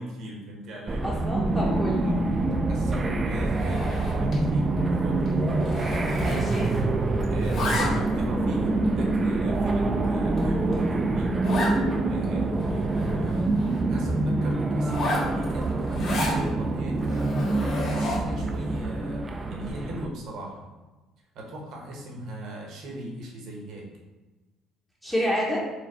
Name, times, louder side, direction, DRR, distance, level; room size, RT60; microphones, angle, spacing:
voice 1, 0.0-1.1 2.0-2.2 2.7-4.7 4.9-5.2 7.3-11.3 12.0-13.6 13.9-17.3 17.8-20.7 21.3-23.9, right 1 dB, 65° right, 0 dB, 1.1 m, -39 dB
sound 1, 0.9-20.1, right 2 dB, 20° right, 0.3 m, -26 dB
voice 2, 1.0-2.1 6.2-6.7 25.0-25.6, equal, 5° left, -7 dB, 0.7 m, -28 dB
Zipper (clothing), 3.4-4.5 4.8-5.0 5.3-6.9 7.2-8.2 8.8-8.9 9.5-9.6 10.0-10.1 10.4-10.5 10.7-10.8 11.4-11.8 12.2-12.3 12.5-13.8 14.8-16.4 17.0-18.4, left 1 dB, 50° left, 1.4 m, -32 dB
4.8 x 2.3 x 4.2 m, 1.2 s
cardioid pair, 135°, 0 cm